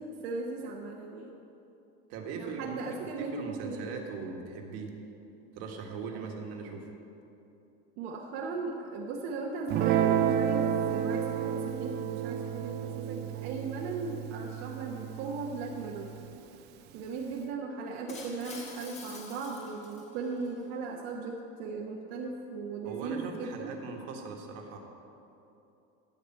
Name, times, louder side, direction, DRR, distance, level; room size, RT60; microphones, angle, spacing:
voice 1, 0.2-1.3 2.3-4.0 6.1-6.4 8.0-16.1 16.9-23.8, right 4 dB, 65° right, -1 dB, 1.1 m, -37 dB
voice 2, 2.1-4.9 5.5-6.9 22.8-24.8, right 5 dB, 50° right, 2 dB, 1.6 m, -40 dB
Guitar, 9.7-16.3, right 9 dB, 35° right, 0.5 m, -31 dB
Shatter, 18.1-20.5, left 3 dB, 20° left, 1.5 m, -47 dB
13.5 x 5.0 x 8.9 m, 2.9 s
cardioid pair, 165°, 32 cm